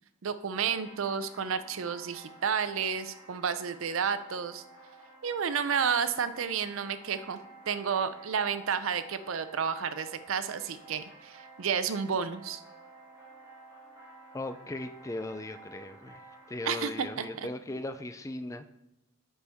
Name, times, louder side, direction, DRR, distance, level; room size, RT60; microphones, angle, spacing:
voice 1, 0.2-4.6 5.2-7.4 7.7-12.6 16.7-17.5, right 6 dB, 75° right, 12 dB, 0.5 m, -31 dB
sound 1, 0.5-17.4, right 3 dB, 15° right, 2.3 m, -52 dB
voice 2, 14.3-16.2 16.5-18.7, left 2 dB, 15° left, 10 dB, 0.3 m, -38 dB
9.5 x 4.3 x 3.5 m, 0.90 s
head